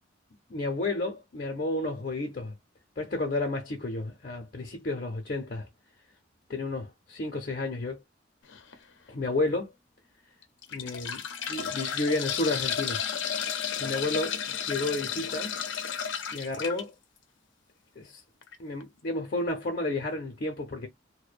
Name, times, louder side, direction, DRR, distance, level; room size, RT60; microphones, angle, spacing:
voice 1, 0.5-2.5 3.0-5.7 6.5-8.0 9.1-9.7 10.7-11.2 11.5-13.0 13.8-15.6 16.3-16.9 18.0-18.2 18.6-20.9, left 2 dB, 50° left, 0.6 m, -31 dB
sound 1, 8.5-8.7 9.4-9.5 10.4-16.8 18.4-18.5 18.8-18.9, left 7 dB, 85° left, 0.6 m, -33 dB
2.5 x 2.1 x 2.4 m
head